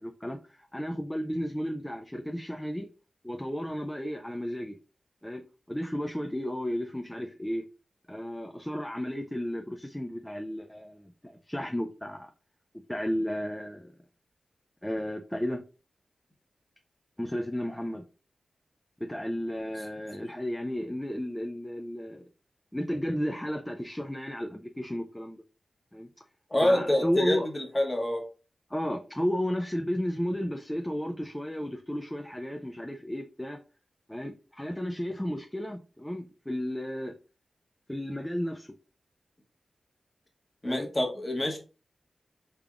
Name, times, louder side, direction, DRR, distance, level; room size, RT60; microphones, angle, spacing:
voice 1, 0.0-2.9 3.2-4.8 5.2-5.4 5.7-7.6 8.1-12.3 12.9-13.9 14.8-15.6 17.2-18.0 19.0-22.2 22.7-25.4 25.9-26.1 26.6-27.5 28.7-33.6 34.1-37.1 37.9-38.7 40.6-40.9, equal, 10° left, 4 dB, 0.4 m, -33 dB
voice 2, 26.5-28.2 40.6-41.6, left 1 dB, 25° left, 1 dB, 1.1 m, -27 dB
3.5 x 3.4 x 2.4 m, 0.34 s
wide cardioid pair, 85°, 0 cm